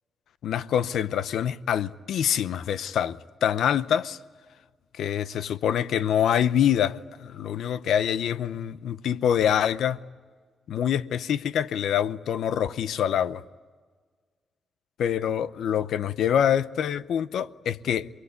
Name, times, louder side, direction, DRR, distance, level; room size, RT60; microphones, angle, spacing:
voice 1, 0.4-4.2 5.0-10.0 10.7-13.4 15.0-18.1, left 9 dB, 80° left, 0.7 m, -25 dB
27.5 x 21.0 x 9.6 m
cardioid pair, 80°, 0 cm